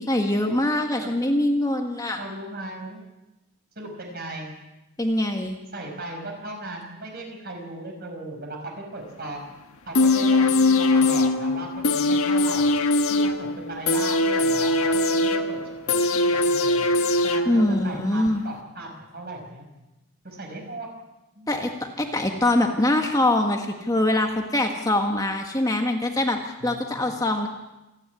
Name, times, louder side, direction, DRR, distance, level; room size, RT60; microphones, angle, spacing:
voice 1, 0.0-2.2 5.0-5.6 17.4-18.4 21.5-27.5, left 1 dB, 15° left, 3 dB, 1.5 m, -23 dB
voice 2, 2.2-3.0 3.8-4.5 5.7-9.5 9.9-12.7 13.1-15.6 15.9-16.9 17.2-19.7 20.2-20.9 21.4-21.5 26.6-27.2, right 2 dB, 45° right, 2 dB, 5.9 m, -37 dB
sound 1, 9.9-17.9 18.3-18.4, left 2 dB, 85° left, 1.5 m, -21 dB
28.0 x 11.0 x 9.8 m, 1.0 s
head